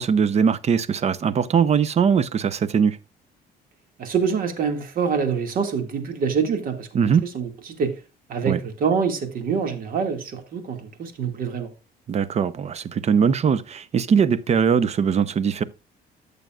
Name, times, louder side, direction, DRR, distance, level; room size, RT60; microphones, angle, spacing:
voice 1, 0.0-3.0 6.9-7.2 8.5-8.6 12.1-15.6, right 7 dB, 40° right, 0.7 m, -21 dB
voice 2, 4.0-6.9 7.3-7.5 7.8-7.9 8.3-11.7, right 6 dB, 55° right, 2.1 m, -25 dB
13.5 x 6.9 x 2.4 m
cardioid pair, 110°, 17 cm